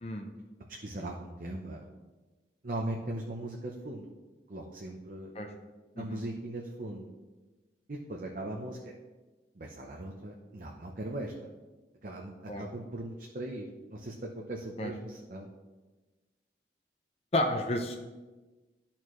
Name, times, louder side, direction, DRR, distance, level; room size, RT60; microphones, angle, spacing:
voice 1, 0.7-1.8 2.6-4.1 4.5-5.4 6.0-7.1 7.9-8.9 9.5-11.5 12.0-15.5, right 1 dB, 50° right, 0 dB, 0.7 m, -39 dB
voice 2, 17.3-18.0, left 1 dB, 35° left, 3 dB, 0.6 m, -31 dB
12.5 x 4.4 x 3.1 m, 1.2 s
head